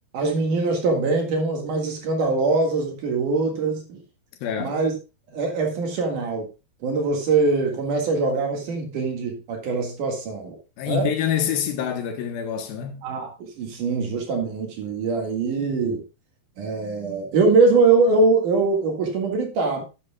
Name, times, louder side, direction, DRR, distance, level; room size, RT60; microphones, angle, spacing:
voice 1, 0.1-4.0 4.6-4.9 5.3-6.5 6.8-10.6 10.9-11.1 13.0-16.0 16.6-19.8, right 3 dB, 60° right, 3.2 m, -22 dB
voice 2, 4.4-4.8 10.8-13.0, left 8 dB, 70° left, 2.8 m, -26 dB
11.0 x 9.5 x 2.3 m
omnidirectional pair, 4.5 m